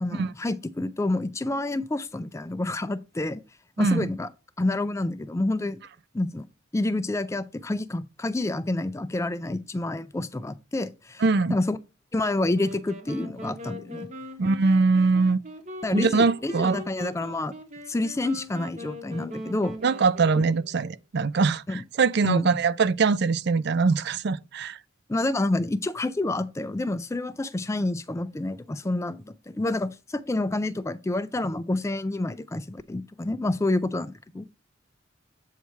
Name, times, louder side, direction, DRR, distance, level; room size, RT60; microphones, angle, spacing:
voice 1, 0.0-3.4 3.8-4.3 4.6-5.8 6.1-6.4 6.7-11.2 11.5-11.8 12.1-14.1 15.8-17.5 17.9-19.8 21.7-21.8 22.2-22.5 25.1-34.4, left 2 dB, 15° left, 0.4 m, -28 dB
voice 2, 3.8-4.1 11.2-11.6 14.4-15.4 15.9-16.8 19.8-24.8, right 4 dB, 55° right, 0.4 m, -22 dB
sound 1, 12.5-21.0, equal, 40° right, 1.1 m, -41 dB
8.2 x 3.2 x 5.5 m
head